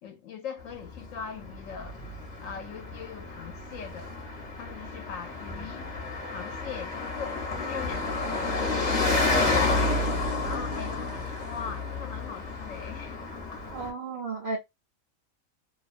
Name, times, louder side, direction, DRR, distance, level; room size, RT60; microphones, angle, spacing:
voice 1, 0.0-2.0 2.4-4.2 4.6-5.9 6.3-10.0 10.4-13.2, left 7 dB, 70° left, 0.9 m, -41 dB
Car passing by, 0.7-13.9, left 3 dB, 40° left, 0.7 m, -30 dB
voice 2, 13.7-14.6, right 3 dB, 80° right, 0.4 m, -33 dB
2.4 x 2.2 x 2.5 m
omnidirectional pair, 1.5 m